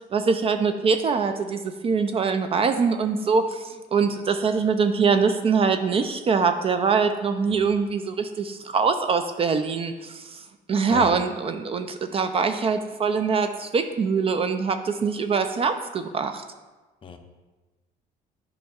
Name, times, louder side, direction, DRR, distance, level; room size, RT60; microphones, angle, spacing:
voice 1, 0.1-10.4 10.7-16.4, right 5 dB, 35° right, 8 dB, 0.4 m, -23 dB
voice 2, 7.5-7.7 10.9-11.1 17.0-17.2, left 6 dB, 30° left, 5 dB, 0.7 m, -35 dB
9.2 x 5.3 x 2.4 m, 1.2 s
cardioid pair, 110°, 17 cm